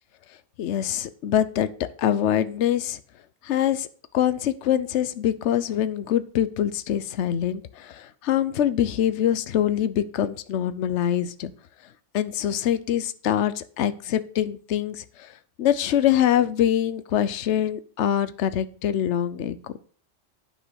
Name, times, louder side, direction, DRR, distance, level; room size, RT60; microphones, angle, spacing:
voice 1, 0.6-1.7 2.0-3.0 3.4-3.9 4.1-11.5 12.1-15.3 15.6-19.7, left 10 dB, 65° left, 13 dB, 1.0 m, -24 dB
10.5 x 5.6 x 6.3 m, 0.43 s
omnidirectional pair, 1.3 m